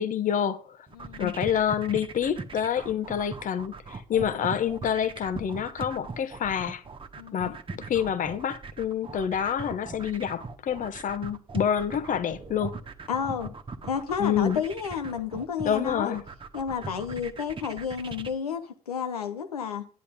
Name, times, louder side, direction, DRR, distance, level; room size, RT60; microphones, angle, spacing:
voice 1, 0.0-0.8 1.2-6.8 7.3-7.6 7.9-12.8 14.2-14.6 15.6-16.2, left 8 dB, 45° left, 1.3 m, -27 dB
voice 2, 0.9-1.3 4.1-4.3 7.2-7.5 13.1-13.5 13.8-16.2 16.5-19.9, left 7 dB, 85° left, 0.9 m, -31 dB
sound 1, 0.9-18.3, right 4 dB, 25° right, 1.4 m, -39 dB
10.5 x 10.0 x 3.7 m
figure-of-eight pair, 55°, 19 cm